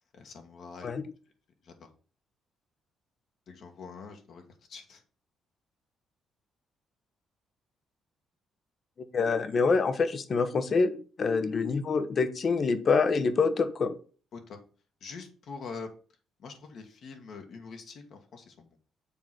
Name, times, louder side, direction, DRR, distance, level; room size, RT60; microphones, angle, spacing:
voice 1, 0.1-0.9 1.6-1.7 3.5-5.0 14.3-14.6 15.0-15.9 16.4-18.7, left 5 dB, 65° left, 4 dB, 1.5 m, -44 dB
voice 2, 9.1-13.9, left 4 dB, 45° left, 11 dB, 0.9 m, -26 dB
7.0 x 3.8 x 6.0 m, 0.39 s
cardioid pair, 90°, 0 cm